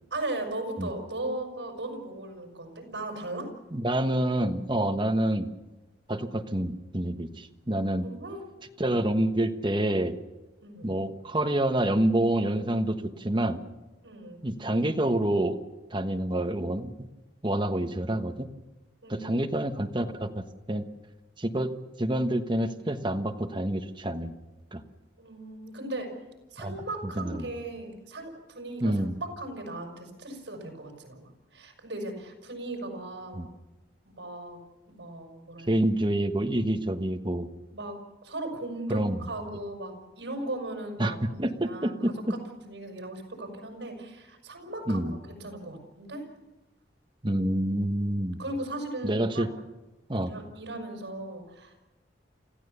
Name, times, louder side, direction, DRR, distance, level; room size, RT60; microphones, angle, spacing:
voice 1, 0.1-3.5 8.0-8.4 10.6-11.0 14.0-14.4 19.0-19.5 25.2-26.1 26.5-33.4 34.0-34.6 34.9-35.8 37.7-46.3 48.4-49.5 50.2-51.8, right 2 dB, 75° right, 3 dB, 6.3 m, -38 dB
voice 2, 3.7-5.5 6.1-8.1 8.8-10.2 10.8-13.6 14.4-15.6 15.9-16.9 17.4-18.5 19.1-20.8 21.4-21.7 22.0-24.3 24.7-24.8 26.6-26.8 27.2-27.5 28.8-29.2 33.3-33.5 35.7-37.5 38.9-39.2 41.0-42.3 44.9-45.1 47.2-48.4 49.0-49.5 50.1-50.3, right 1 dB, 25° right, 5 dB, 1.3 m, -27 dB
29.0 x 15.0 x 6.9 m, 1.1 s
head